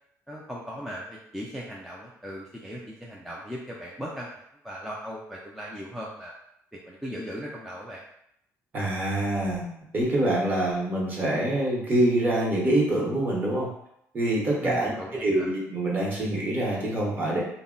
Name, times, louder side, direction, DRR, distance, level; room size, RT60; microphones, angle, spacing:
voice 1, 0.3-6.3 6.7-8.0 14.6-15.5, equal, ahead, -4 dB, 0.3 m, -38 dB
voice 2, 8.7-9.7 9.9-13.7 14.1-14.9 15.2-17.4, right 1 dB, 30° right, -4 dB, 0.9 m, -25 dB
2.1 x 2.1 x 3.7 m, 0.75 s
cardioid pair, 125°, 6 cm